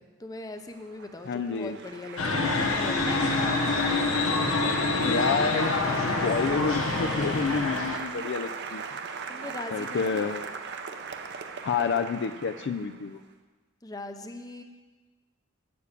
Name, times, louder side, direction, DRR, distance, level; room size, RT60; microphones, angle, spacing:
voice 1, 0.0-3.4 4.4-4.8 9.3-10.4 13.8-14.6, left 2 dB, 20° left, 6 dB, 0.7 m, -41 dB
Applause, 0.7-13.1, right 5 dB, 55° right, 0.7 m, -38 dB
voice 2, 1.2-1.8 5.1-5.7 6.0-8.9 9.7-10.4 11.6-13.2, left 5 dB, 55° left, 8 dB, 0.4 m, -29 dB
sound 1, 2.2-8.0, left 3 dB, 80° left, 1.0 m, -26 dB
8.3 x 7.0 x 6.7 m, 1.3 s
head